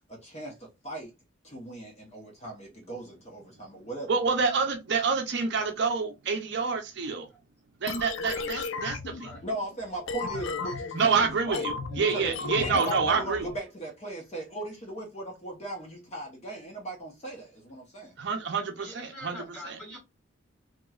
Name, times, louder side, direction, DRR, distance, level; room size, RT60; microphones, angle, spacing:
voice 1, 0.1-1.1 1.4-4.1 9.4-11.7 11.9-18.1, right 2 dB, 35° left, 0.8 m, -38 dB
voice 2, 4.1-7.3 7.8-9.3 10.9-13.5 18.2-19.8, right 5 dB, 55° right, 0.5 m, -28 dB
sound 1, 7.9-13.6, left 4 dB, 70° left, 0.5 m, -35 dB
voice 3, 9.1-9.4 12.0-12.7 18.8-20.0, left 1 dB, 5° left, 1.9 m, -45 dB
2.9 x 2.9 x 2.3 m
head